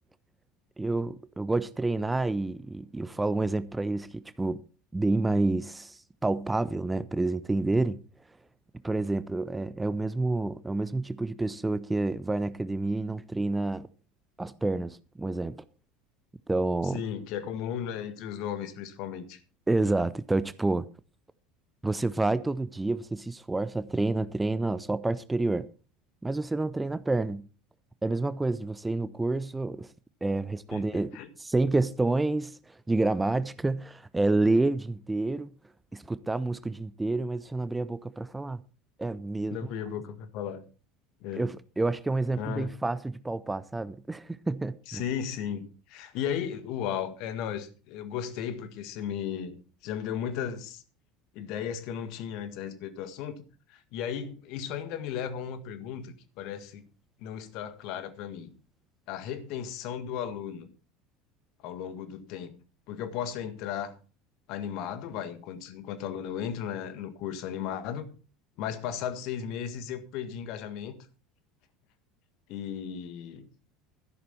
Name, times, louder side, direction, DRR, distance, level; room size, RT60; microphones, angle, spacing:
voice 1, 0.8-4.6 4.9-8.0 8.8-13.9 14.4-15.6 16.5-17.0 19.7-20.8 21.8-25.7 26.2-27.4 28.0-29.9 30.2-31.1 31.4-35.5 35.9-38.6 39.0-39.6 41.4-45.0, right 2 dB, 10° right, 0.6 m, -29 dB
voice 2, 16.9-19.4 30.7-31.3 39.5-40.6 41.2-41.5 42.4-42.7 44.9-49.6 49.8-50.8 51.4-53.4 53.7-56.9 57.2-58.5 59.1-60.7 61.6-62.6 62.9-63.9 64.5-68.1 68.6-70.9 72.5-73.5, left 8 dB, 50° left, 1.8 m, -35 dB
13.0 x 11.0 x 4.3 m
figure-of-eight pair, 70°, 0 cm